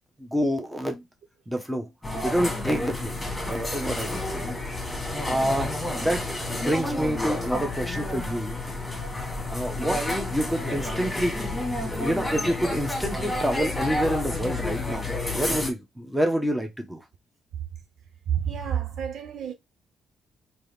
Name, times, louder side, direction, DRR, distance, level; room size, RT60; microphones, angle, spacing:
voice 1, 0.2-1.0 1.5-1.9 2.2-3.1 3.5-4.5 5.2-6.3 6.6-8.6 9.5-11.4 11.9-17.0, equal, 5° right, 1.1 m, -28 dB
sound 1, 2.0-15.7, left 2 dB, 10° left, 1.7 m, -30 dB
voice 2, 18.3-19.5, right 9 dB, 65° right, 0.7 m, -29 dB
3.7 x 2.9 x 3.3 m
cardioid pair, 90°, 0 cm